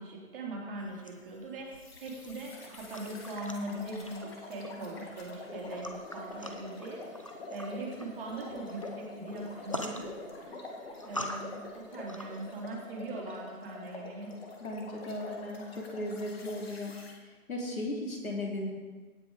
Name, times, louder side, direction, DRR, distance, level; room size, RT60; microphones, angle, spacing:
voice 1, 0.0-10.1 10.4-10.8 11.0-14.3, right 2 dB, 35° right, -3 dB, 3.3 m, -41 dB
sound 1, 0.8-12.6, left 1 dB, 25° left, 0.5 m, -46 dB
sound 2, 1.7-17.1, left 2 dB, 40° left, 2.1 m, -46 dB
voice 2, 14.6-16.9 17.5-18.7, left 1 dB, 70° left, -1 dB, 3.1 m, -36 dB
17.0 x 6.0 x 5.1 m, 1.4 s
figure-of-eight pair, 140°, 44 cm